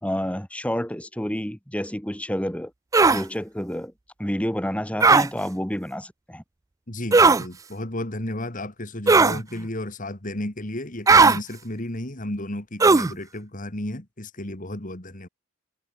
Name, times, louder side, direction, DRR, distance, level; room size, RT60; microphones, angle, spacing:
voice 1, 0.0-2.7 3.1-3.9 4.2-6.4, equal, 5° left, 2.7 m, -29 dB
sound 1, 2.9-3.2 5.0-5.3 7.1-7.4 9.1-9.4 11.1-11.4 12.8-13.1, right 4 dB, 15° right, 0.3 m, -15 dB
voice 2, 6.9-15.3, left 1 dB, 40° left, 2.7 m, -33 dB
head